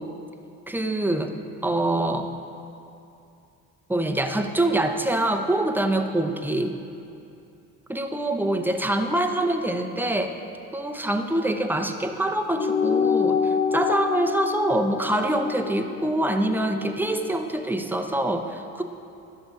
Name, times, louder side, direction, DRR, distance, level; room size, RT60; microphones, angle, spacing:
voice 1, 0.7-1.3 1.6-2.3 3.9-6.7 7.9-10.3 10.7-18.8, right 1 dB, 5° right, 6 dB, 0.8 m, -25 dB
sound 1, 12.6-17.4, left 6 dB, 20° left, 0.4 m, -27 dB
12.5 x 6.8 x 5.0 m, 2.6 s
hypercardioid pair, 55°, 44 cm